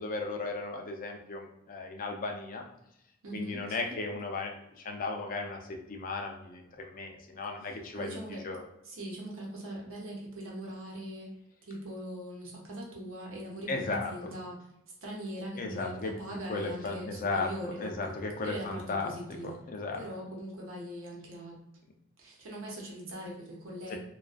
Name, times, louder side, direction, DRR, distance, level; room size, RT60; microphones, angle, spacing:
voice 1, 0.0-2.6 3.3-8.2 8.4-8.6 13.7-14.3 15.5-16.1 16.5-20.0 23.9-24.0, left 3 dB, 40° left, 2 dB, 0.4 m, -36 dB
voice 2, 3.2-4.0 7.6-8.5 8.8-11.4 11.6-14.6 15.0-18.0 18.4-19.6 19.9-21.6 22.2-24.0, equal, 65° right, -2 dB, 0.8 m, -41 dB
2.3 x 2.3 x 2.4 m, 0.83 s
head